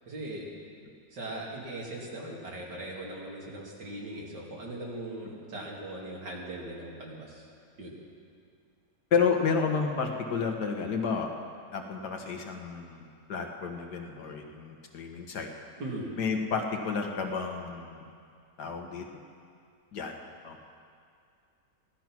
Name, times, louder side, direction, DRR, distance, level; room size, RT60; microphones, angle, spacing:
voice 1, 0.1-0.5 1.1-7.5 7.8-8.0 15.8-16.1, right 1 dB, 80° right, -3 dB, 3.0 m, -39 dB
voice 2, 9.1-11.3 11.7-15.5 16.2-18.0 18.6-19.0 19.9-20.1 20.4-20.6, left 5 dB, 70° left, 3 dB, 1.8 m, -31 dB
16.0 x 12.0 x 6.0 m, 2.3 s
omnidirectional pair, 1.9 m